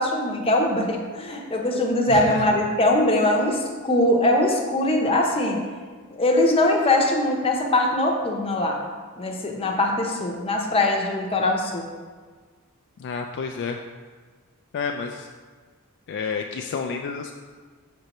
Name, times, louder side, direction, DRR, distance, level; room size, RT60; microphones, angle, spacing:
voice 1, 0.0-5.6 6.1-8.8 9.2-11.9, left 1 dB, 25° left, 0 dB, 0.7 m, -22 dB
voice 2, 2.1-2.4 13.0-13.8 14.7-15.3 16.1-17.3, left 5 dB, 55° left, 3 dB, 0.3 m, -30 dB
6.4 x 5.2 x 3.0 m, 1.5 s
head